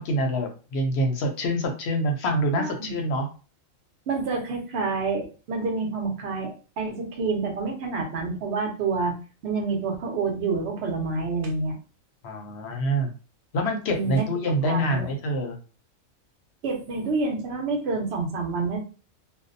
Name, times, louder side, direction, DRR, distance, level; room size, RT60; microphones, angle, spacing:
voice 1, 0.0-3.3 12.2-13.1 13.5-15.6, equal, 60° left, 3 dB, 0.7 m, -26 dB
voice 2, 2.6-2.9 4.1-9.1 9.4-11.7 13.9-14.3 14.7-15.1 16.6-18.8, right 4 dB, 55° right, 1 dB, 0.9 m, -28 dB
2.6 x 2.1 x 2.5 m, 0.35 s
omnidirectional pair, 1.4 m